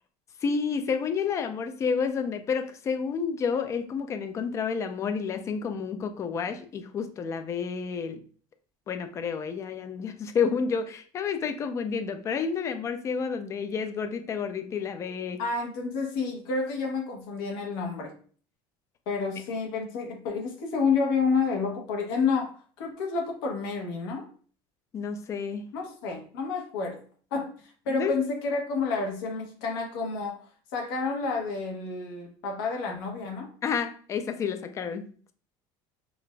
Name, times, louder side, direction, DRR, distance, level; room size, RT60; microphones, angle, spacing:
voice 1, 0.4-8.2 8.9-15.4 24.9-25.6 27.9-28.1 33.6-35.0, left 6 dB, 25° left, 9 dB, 0.4 m, -30 dB
voice 2, 15.4-18.1 19.1-24.2 25.7-27.0 27.3-30.4 30.7-33.5, left 4 dB, 85° left, 1 dB, 1.0 m, -29 dB
4.9 x 2.4 x 2.2 m, 0.43 s
cardioid pair, 150°, 12 cm